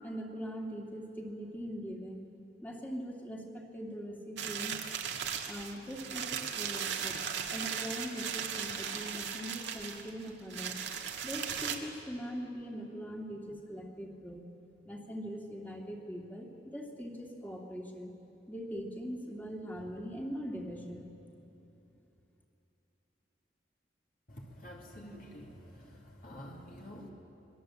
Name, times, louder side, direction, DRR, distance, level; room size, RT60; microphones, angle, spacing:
voice 1, 0.0-2.3 2.6-4.7 5.4-7.2 7.5-10.8 11.2-14.4 14.8-18.1 18.5-21.0, equal, 10° left, 0 dB, 2.4 m, -41 dB
sound 1, 4.4-11.8, right 7 dB, 80° right, 1.8 m, -37 dB
voice 2, 24.3-27.1, equal, 50° left, -1 dB, 3.0 m, -48 dB
26.5 x 21.0 x 7.7 m, 3.0 s
head